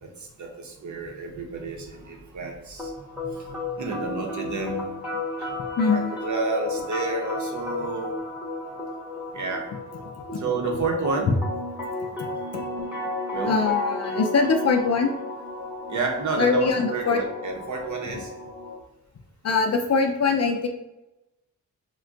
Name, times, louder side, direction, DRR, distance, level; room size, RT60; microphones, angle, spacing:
voice 1, 0.0-4.9 5.4-5.5 5.9-8.1 9.3-9.7 10.4-11.3 13.3-13.5 15.9-18.3, right 3 dB, 50° right, 1 dB, 0.8 m, -30 dB
sound 1, 2.8-18.8, left 2 dB, 5° right, 0.9 m, -33 dB
voice 2, 5.8-6.1 10.3-10.4 13.5-15.1 16.4-17.2 19.4-20.7, left 4 dB, 45° left, 4 dB, 0.5 m, -22 dB
2.4 x 2.2 x 3.8 m, 0.95 s
cardioid pair, 65°, 38 cm